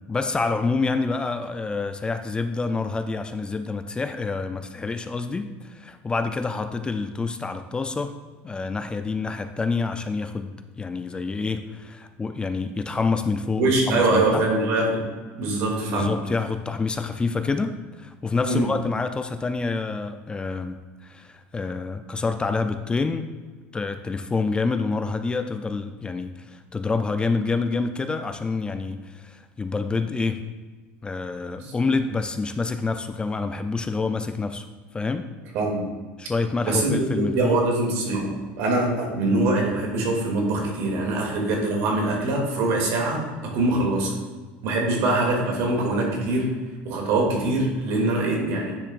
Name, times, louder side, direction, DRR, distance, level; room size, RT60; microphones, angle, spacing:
voice 1, 0.1-8.1 8.4-10.5 10.8-14.4 15.9-23.3 23.7-30.4 31.0-34.7 34.9-35.3 36.2-37.6, left 4 dB, 15° left, 9 dB, 0.4 m, -27 dB
voice 2, 13.6-15.0 15.4-16.2 18.5-18.7 31.6-32.0 35.5-35.9 36.6-44.1 44.6-46.5 46.8-48.8, right 2 dB, 70° right, 0 dB, 2.5 m, -23 dB
10.0 x 7.0 x 2.5 m, 1.4 s
supercardioid pair, 110°, 5 cm